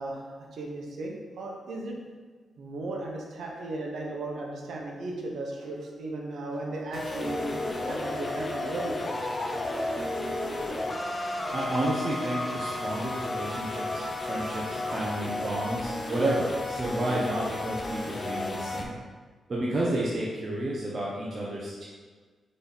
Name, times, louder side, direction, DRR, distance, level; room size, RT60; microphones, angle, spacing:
voice 1, 0.0-2.0 2.6-9.1, right 2 dB, 75° right, 0 dB, 1.1 m, -36 dB
sound 1, 6.9-18.8, left 2 dB, 30° left, 0.8 m, -33 dB
voice 2, 11.5-18.9 19.5-21.9, right 1 dB, 40° right, -5 dB, 1.0 m, -31 dB
5.4 x 4.2 x 4.1 m, 1.5 s
cardioid pair, 80°, 0 cm